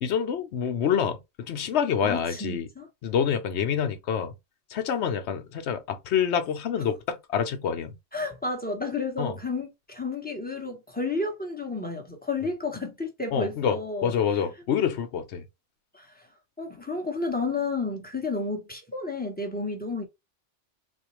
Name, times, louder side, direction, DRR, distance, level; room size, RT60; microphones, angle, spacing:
voice 1, 0.0-2.7 3.0-4.3 4.7-7.9 9.2-9.3 13.3-15.5, left 7 dB, 70° left, 1.0 m, -27 dB
voice 2, 2.0-2.9 8.1-14.1 15.9-16.3 16.6-20.0, left 3 dB, 10° left, 1.0 m, -31 dB
4.1 x 2.3 x 3.0 m
omnidirectional pair, 1.2 m